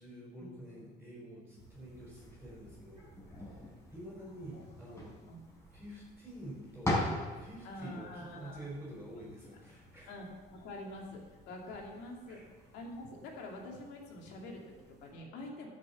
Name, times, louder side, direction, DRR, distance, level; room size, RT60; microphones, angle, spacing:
voice 1, 0.0-3.1 3.4-5.1 5.7-7.0 7.4-10.2 12.3-12.5, right 1 dB, 5° right, -6 dB, 4.6 m, -48 dB
sound 1, 1.6-15.1, left 1 dB, 15° left, 4.8 m, -43 dB
voice 2, 4.4-5.4 7.6-8.7 10.1-12.4 12.7-15.7, left 1 dB, 90° left, 0 dB, 2.7 m, -46 dB
12.0 x 6.8 x 7.2 m, 1.3 s
cardioid pair, 110°, 17 cm